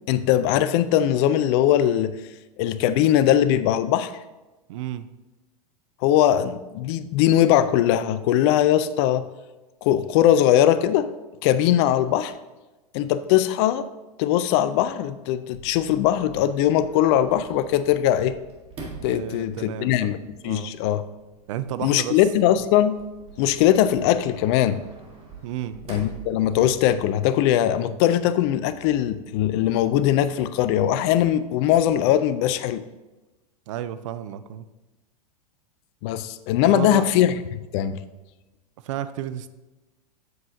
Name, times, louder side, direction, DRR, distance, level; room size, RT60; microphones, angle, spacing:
voice 1, 0.1-2.1 2.6-4.2 6.0-9.3 9.8-11.1 11.4-12.3 12.9-13.9 14.2-18.4 19.0-20.2 20.4-21.0 21.8-23.0 23.4-24.8 25.9-32.8 36.0-38.0, left 11 dB, 40° left, 13 dB, 0.4 m, -20 dB
voice 2, 4.7-5.1 19.1-20.7 21.5-22.2 25.4-25.8 33.7-34.7 36.7-37.1 38.8-39.5, right 11 dB, 50° right, 13 dB, 0.5 m, -32 dB
Sliding door, 15.5-27.0, right 4 dB, 30° right, 1.7 m, -45 dB
7.6 x 7.4 x 2.7 m, 1.1 s
figure-of-eight pair, 95°, 20 cm